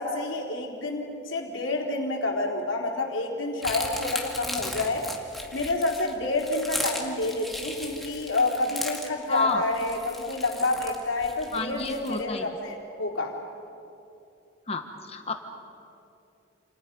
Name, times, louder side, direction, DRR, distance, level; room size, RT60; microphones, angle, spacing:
voice 1, 0.0-5.1 5.5-13.4, left 2 dB, 85° left, 0 dB, 3.8 m, -28 dB
sound 1, 3.6-12.2, left 1 dB, ahead, 2.1 m, -36 dB
voice 2, 9.3-9.6 11.5-12.4 14.7-15.3, left 3 dB, 30° left, 5 dB, 1.5 m, -29 dB
29.0 x 29.0 x 5.4 m, 2.8 s
head